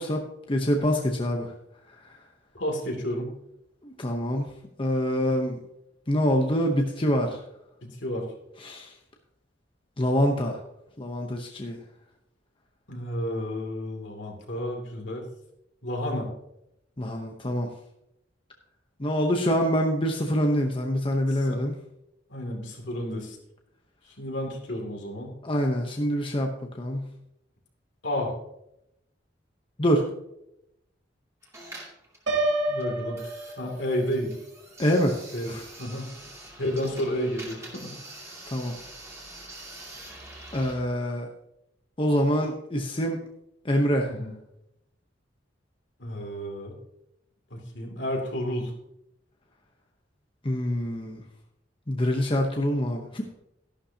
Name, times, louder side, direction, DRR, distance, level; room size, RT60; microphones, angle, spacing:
voice 1, 0.0-1.5 2.0-2.2 3.8-4.5 4.8-5.6 6.1-7.4 8.6-8.9 10.0-10.6 11.0-11.8 17.0-17.7 19.0-21.7 25.4-27.1 29.8-30.1 34.8-35.2 35.5-35.6 38.5-38.8 40.5-41.3 42.0-43.2 43.6-44.1 50.4-51.2 51.9-53.2, equal, 30° left, 2 dB, 0.9 m, -25 dB
voice 2, 2.5-3.3 7.8-8.3 12.9-15.2 15.8-16.3 21.3-21.6 22.3-23.4 24.2-25.4 28.0-28.3 32.7-33.2 33.6-34.3 35.3-35.5 35.8-36.1 36.6-37.9 44.0-44.3 46.0-46.8 47.5-48.7, equal, 70° left, 1 dB, 2.6 m, -31 dB
Cd rom reading cd, 31.4-40.7, right 2 dB, 15° right, 2.5 m, -45 dB
Piano, 32.3-34.2, right 1 dB, 70° right, 2.0 m, -28 dB
13.0 x 11.5 x 2.8 m, 0.83 s
head